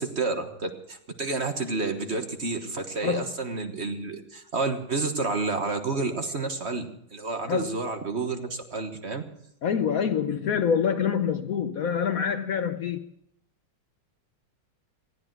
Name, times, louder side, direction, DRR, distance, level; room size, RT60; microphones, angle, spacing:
voice 1, 0.0-6.9 7.1-9.2, right 3 dB, 40° right, 1.5 m, -30 dB
voice 2, 9.6-13.1, left 7 dB, 60° left, 1.0 m, -26 dB
19.0 x 15.0 x 4.7 m
omnidirectional pair, 1.9 m